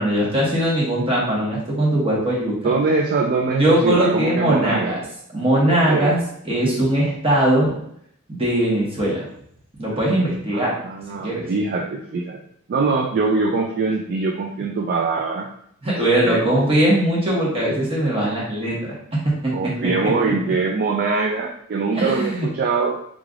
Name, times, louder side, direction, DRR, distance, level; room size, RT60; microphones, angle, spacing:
voice 1, 0.0-2.6 3.6-5.0 5.3-6.2 6.4-7.7 8.3-9.3 9.8-10.8 11.1-11.5 15.8-20.1 21.9-22.5, right 1 dB, 25° right, -5 dB, 1.2 m, -20 dB
voice 2, 2.6-5.0 5.7-6.1 10.5-12.4 12.7-15.5 16.2-16.4 19.5-23.0, right 4 dB, 45° right, 1 dB, 0.3 m, -23 dB
3.7 x 3.3 x 2.4 m, 0.70 s
head